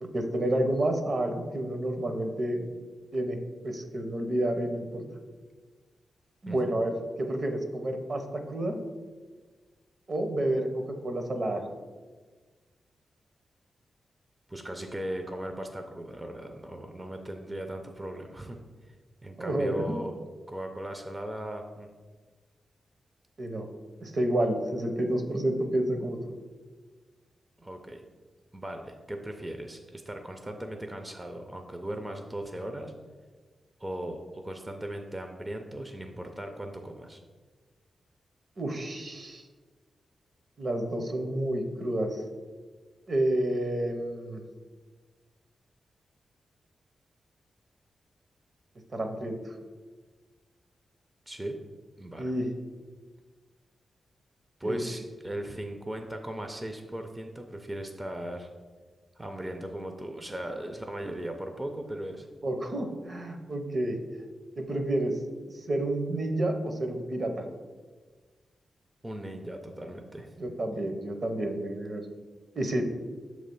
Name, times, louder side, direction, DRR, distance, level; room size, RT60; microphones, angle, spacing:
voice 1, 0.0-2.7 3.1-3.4 3.6-5.0 6.4-8.2 8.5-8.8 10.1-10.7 11.0-11.6 19.4-20.0 23.4-23.7 24.0-26.2 38.6-39.4 40.6-42.2 43.1-44.4 48.9-49.4 52.2-52.5 54.6-54.9 62.4-64.0 64.6-65.2 65.5-67.4 70.4-72.1 72.5-72.8, right 1 dB, 45° right, 5 dB, 0.7 m, -29 dB
voice 2, 14.5-18.6 19.2-20.2 20.5-21.9 27.6-28.0 28.5-32.9 33.8-37.2 51.3-51.6 52.0-52.3 54.6-58.5 59.2-62.3 69.0-70.3, right 1 dB, 15° right, 4 dB, 0.5 m, -38 dB
6.4 x 3.2 x 5.3 m, 1.4 s
cardioid pair, 90°, 0 cm